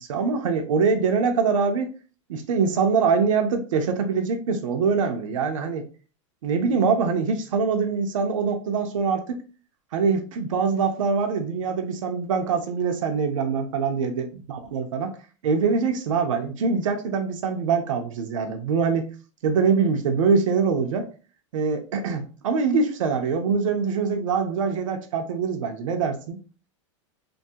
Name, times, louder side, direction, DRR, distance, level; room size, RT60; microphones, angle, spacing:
voice 1, 0.0-1.9 2.3-5.9 6.4-9.4 9.9-15.1 15.4-19.1 19.4-21.1 21.5-26.4, right 5 dB, 80° right, 5 dB, 0.5 m, -24 dB
2.5 x 2.3 x 2.6 m, 0.37 s
hypercardioid pair, 115°, 16 cm